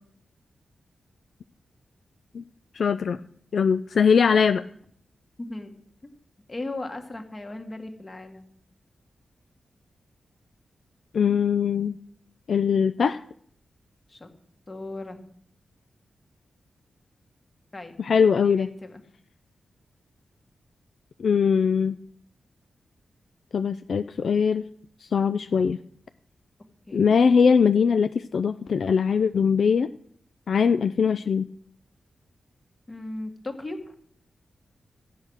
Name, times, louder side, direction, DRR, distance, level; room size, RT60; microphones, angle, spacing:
voice 1, 2.7-3.2 3.5-4.6 11.1-12.0 12.5-13.2 18.0-18.7 21.2-22.0 23.5-24.6 25.0-25.8 26.9-29.9 30.5-31.5, left 6 dB, 55° left, 11 dB, 0.4 m, -21 dB
voice 2, 5.4-5.7 6.0-6.1 6.5-8.5 14.1-14.3 14.7-15.2 17.7-17.9 18.4-19.0 25.5-25.6 26.9-27.1 32.9-33.9, left 2 dB, 25° left, 5 dB, 1.7 m, -37 dB
14.5 x 8.7 x 6.3 m, 0.63 s
wide cardioid pair, 175°, 0 cm